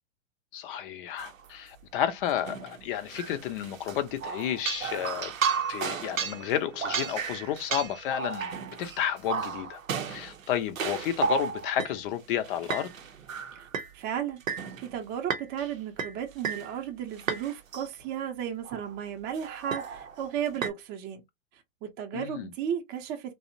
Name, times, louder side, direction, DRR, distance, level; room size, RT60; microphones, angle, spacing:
voice 1, 0.5-5.3 5.7-8.5 8.8-9.8 10.1-12.9 22.1-22.5, left 10 dB, 45° left, 0.5 m, -31 dB
sound 1, 1.2-1.5 2.3-11.9 12.4-13.9 14.4-15.0 15.3-15.7 16.0-16.7 17.2-17.9 18.6-18.9 19.4-20.7, right 6 dB, 90° right, 0.6 m, -33 dB
voice 2, 13.9-14.4 14.8-21.2 21.8-23.3, right 9 dB, 25° right, 0.6 m, -34 dB
2.7 x 2.0 x 2.5 m
hypercardioid pair, 105°, 39 cm